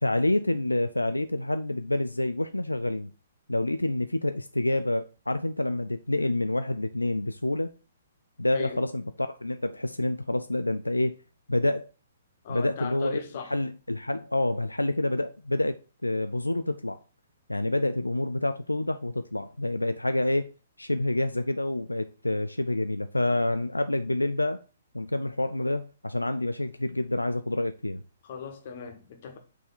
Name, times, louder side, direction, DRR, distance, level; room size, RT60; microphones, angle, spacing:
voice 1, 0.0-3.1 3.5-7.7 8.4-11.2 11.5-11.9 12.5-13.2 13.5-17.0 17.5-20.5 20.8-24.6 24.9-28.0, left 1 dB, 90° left, 0.4 m, -28 dB
voice 2, 12.4-13.5 28.2-29.4, left 6 dB, 45° left, 1.5 m, -38 dB
6.0 x 4.4 x 3.9 m
figure-of-eight pair, 125°, 0 cm